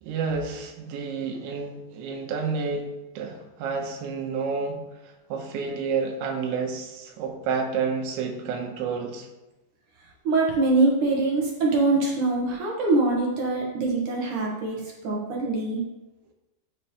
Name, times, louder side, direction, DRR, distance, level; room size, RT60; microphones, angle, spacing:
voice 1, 0.0-2.9 3.2-9.3, right 5 dB, 80° right, 2 dB, 3.4 m, -30 dB
voice 2, 10.2-15.8, right 3 dB, 65° right, -2 dB, 2.0 m, -24 dB
15.0 x 6.6 x 3.2 m, 1.0 s
omnidirectional pair, 5.4 m